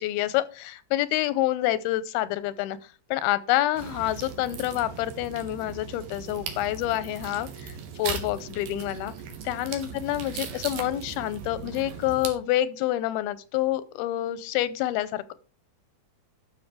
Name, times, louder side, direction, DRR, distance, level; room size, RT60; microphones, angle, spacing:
voice 1, 0.0-2.8 3.1-9.1 9.5-15.3, left 14 dB, 85° left, 16 dB, 2.6 m, -27 dB
sound 1, 3.8-12.3, right 6 dB, 75° right, 3.4 m, -38 dB
12.5 x 6.3 x 4.8 m, 0.37 s
omnidirectional pair, 4.4 m